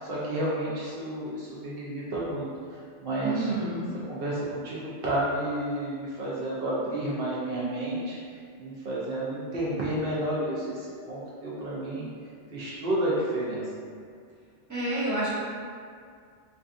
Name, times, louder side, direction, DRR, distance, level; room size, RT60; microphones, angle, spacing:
voice 1, 0.0-2.5 3.0-3.6 4.1-8.2 8.6-12.1 12.5-13.6, right 1 dB, 60° right, -7 dB, 0.7 m, -31 dB
voice 2, 3.2-3.9 14.7-15.3, right 2 dB, 20° right, -11 dB, 0.7 m, -29 dB
2.5 x 2.4 x 2.4 m, 2.2 s
omnidirectional pair, 1.2 m